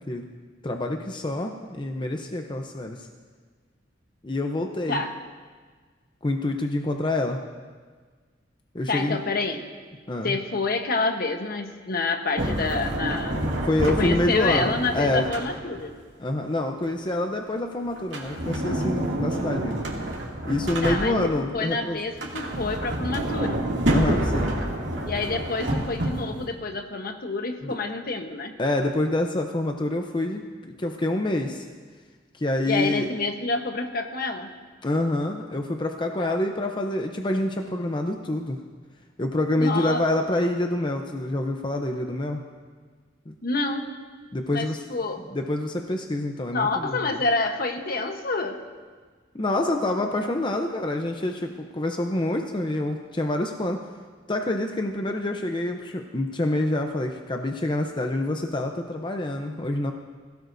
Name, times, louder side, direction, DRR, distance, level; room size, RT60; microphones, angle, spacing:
voice 1, 0.6-3.1 4.2-5.0 6.2-7.4 8.7-9.2 10.1-10.3 13.6-15.2 16.2-19.8 20.4-22.0 23.9-24.5 27.6-27.8 28.6-31.7 32.3-33.1 34.8-38.6 39.2-42.4 43.3-43.4 44.3-44.8 45.3-47.2 49.3-53.8 54.3-59.9, left 1 dB, 25° left, 3 dB, 0.7 m, -27 dB
voice 2, 8.9-9.6 10.2-13.5 13.9-15.9 20.8-23.6 25.0-28.5 32.7-34.5 36.2-36.3 39.6-40.0 43.4-43.9 44.5-45.2 46.5-48.6, left 3 dB, 55° left, 6 dB, 1.1 m, -28 dB
Sliding door, 12.4-15.9 18.0-21.5 22.1-26.4, right 1 dB, 70° right, 2.5 m, -28 dB
21.5 x 16.5 x 2.7 m, 1.5 s
head